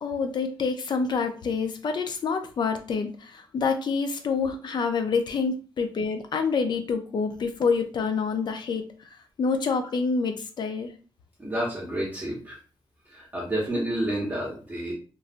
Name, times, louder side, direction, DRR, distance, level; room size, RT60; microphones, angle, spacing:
voice 1, 0.0-8.9 9.4-10.9, left 5 dB, 55° left, 7 dB, 0.5 m, -27 dB
voice 2, 11.4-12.6 13.1-14.9, right 1 dB, 20° right, -6 dB, 0.9 m, -29 dB
3.0 x 2.6 x 2.5 m, 0.38 s
wide cardioid pair, 130°, 9 cm